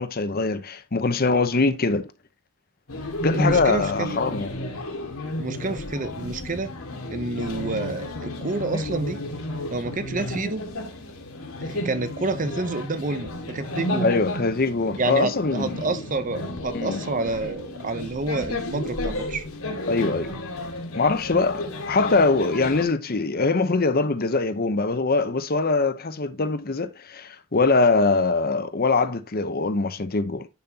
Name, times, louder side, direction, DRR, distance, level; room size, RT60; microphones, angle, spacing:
voice 1, 0.0-2.1 3.2-4.6 14.0-15.7 16.7-17.0 19.9-20.4 20.9-30.5, left 3 dB, 45° left, 0.8 m, -23 dB
sound 1, 2.9-22.8, left 1 dB, 80° left, 2.0 m, -32 dB
voice 2, 3.3-4.2 5.4-6.7 7.1-9.2 9.7-10.7 11.6-14.1 15.0-19.5, right 3 dB, 35° right, 0.7 m, -28 dB
10.5 x 5.9 x 2.8 m
head